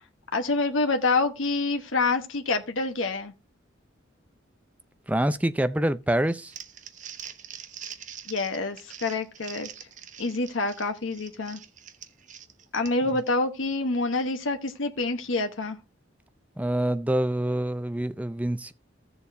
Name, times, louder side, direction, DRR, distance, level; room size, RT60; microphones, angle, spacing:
voice 1, 0.3-3.3 8.3-9.7 10.2-11.6 12.7-15.8, left 3 dB, 85° left, 1.0 m, -27 dB
voice 2, 5.1-6.5 16.6-18.7, right 1 dB, 5° right, 0.5 m, -26 dB
Crumpling crinkling, 6.3-13.2, right 9 dB, 40° right, 0.8 m, -44 dB
15.0 x 7.0 x 2.6 m
head